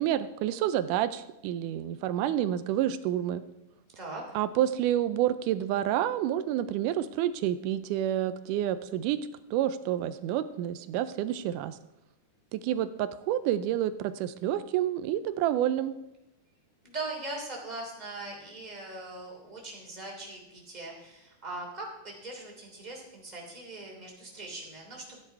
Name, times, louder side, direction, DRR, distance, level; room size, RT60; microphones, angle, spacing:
voice 1, 0.0-3.4 4.3-9.2 9.5-11.8 12.5-15.9, right 11 dB, 85° right, 13 dB, 2.1 m, -29 dB
voice 2, 16.8-25.2, right 2 dB, 15° right, -2 dB, 3.0 m, -40 dB
13.5 x 9.9 x 4.6 m, 0.92 s
omnidirectional pair, 3.6 m